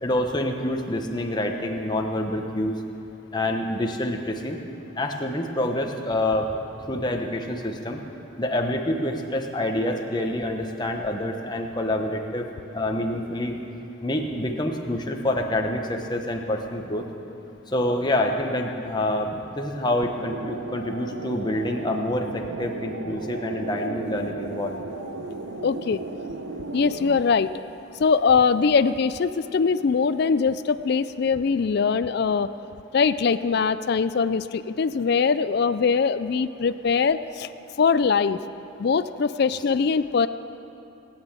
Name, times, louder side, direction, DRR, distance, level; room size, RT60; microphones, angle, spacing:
voice 1, 0.0-2.8 3.3-4.6 5.0-6.5 6.8-8.0 8.4-12.4 12.7-13.5 14.0-17.0 17.7-24.8, left 1 dB, 20° left, 2 dB, 1.1 m, -27 dB
sound 1, 20.0-27.2, right 2 dB, 85° right, 0.8 m, -35 dB
voice 2, 25.6-26.0 26.7-27.5 28.0-32.5 32.9-37.5 37.8-38.4 38.8-40.3, left 5 dB, 50° left, 12 dB, 0.4 m, -22 dB
19.0 x 8.9 x 7.4 m, 2.8 s
head